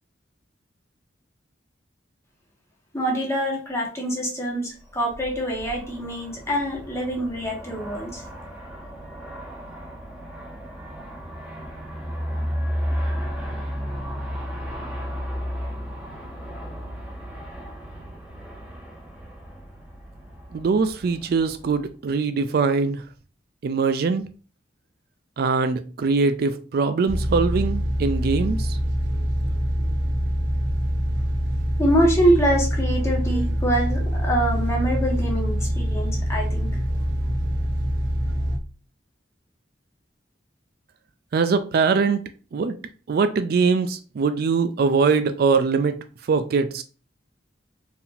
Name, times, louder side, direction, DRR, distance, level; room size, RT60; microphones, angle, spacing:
voice 1, 2.9-8.2 31.8-36.7, right 1 dB, 15° left, 1.4 m, -24 dB
Aircraft, 4.9-22.1, equal, 5° right, 1.2 m, -34 dB
voice 2, 20.5-23.0 23.6-24.2 25.4-28.8 41.3-42.2 42.5-42.8 43.1-46.0 46.3-46.8, right 4 dB, 60° right, 0.4 m, -22 dB
sound 1, 27.1-38.6, equal, 75° right, 0.9 m, -24 dB
4.6 x 3.5 x 2.6 m
head